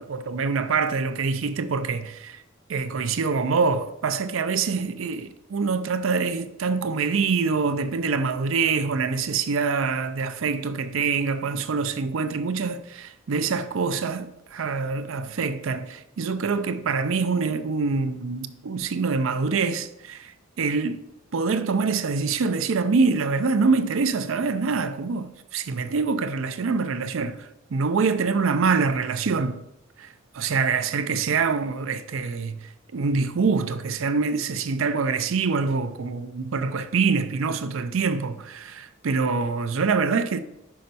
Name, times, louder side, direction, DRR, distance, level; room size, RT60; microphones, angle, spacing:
voice 1, 0.0-2.4 2.7-20.3 20.6-21.0 21.3-29.6 30.0-40.4, right 4 dB, 70° right, 0.5 m, -25 dB
5.7 x 5.3 x 4.0 m
head